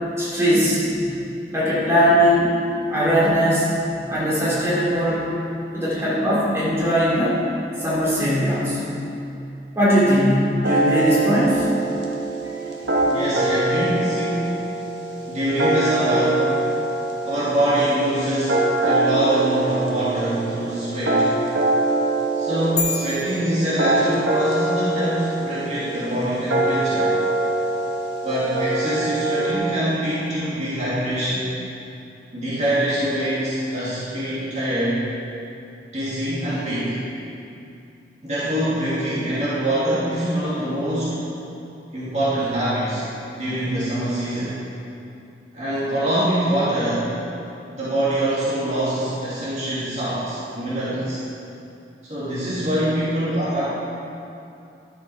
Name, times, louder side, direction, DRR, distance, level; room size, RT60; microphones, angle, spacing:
voice 1, 0.2-1.0 1.5-2.5 2.9-5.3 5.7-7.4 7.8-8.9 9.7-11.6 12.4-12.7, equal, 15° right, -9 dB, 2.7 m, -20 dB
sound 1, 10.6-29.5, right 2 dB, 85° right, 1.4 m, -24 dB
voice 2, 13.0-14.6 15.3-16.5 17.2-21.3 22.4-27.1 28.2-31.5 32.3-35.0 35.9-37.0 38.2-41.2 41.9-43.0 43.4-44.5 45.5-47.1 47.7-51.2 52.1-53.6, right 1 dB, 40° right, -10 dB, 2.2 m, -24 dB
sound 2, 22.8-24.5, left 6 dB, 40° left, 0.9 m, -30 dB
11.5 x 7.1 x 4.8 m, 2.7 s
head